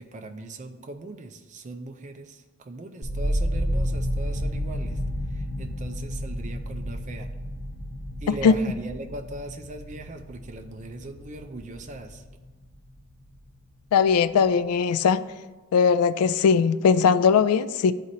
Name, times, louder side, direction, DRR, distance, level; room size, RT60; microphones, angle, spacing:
voice 1, 0.0-5.0 5.3-7.3 8.2-12.2, right 2 dB, 35° right, 5 dB, 0.4 m, -39 dB
sound 1, 3.0-13.0 13.3-14.0, equal, 55° left, 0.8 m, -31 dB
voice 2, 8.3-8.6 13.9-15.2 15.7-17.9, left 6 dB, 85° left, 15 dB, 0.3 m, -20 dB
11.0 x 4.1 x 2.6 m, 1.2 s
head